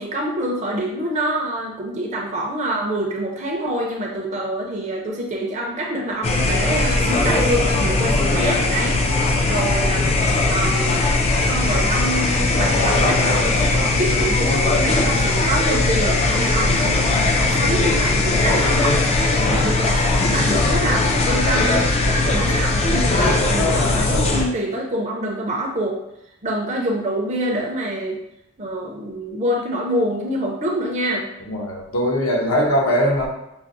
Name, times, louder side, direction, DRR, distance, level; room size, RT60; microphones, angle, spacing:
voice 1, 0.0-9.0 9.5-10.0 10.5-11.0 11.5-19.0 19.5-19.9 20.2-21.8 22.3-26.0 26.4-28.2 28.6-31.3, right 1 dB, 30° right, 0 dB, 0.5 m, -26 dB
sound 1, 6.2-24.5, left 2 dB, 30° left, 0.3 m, -19 dB
voice 2, 19.4-20.0 22.0-22.4 31.5-33.3, equal, 65° left, 0 dB, 0.7 m, -22 dB
5.7 x 2.0 x 2.5 m, 0.83 s
head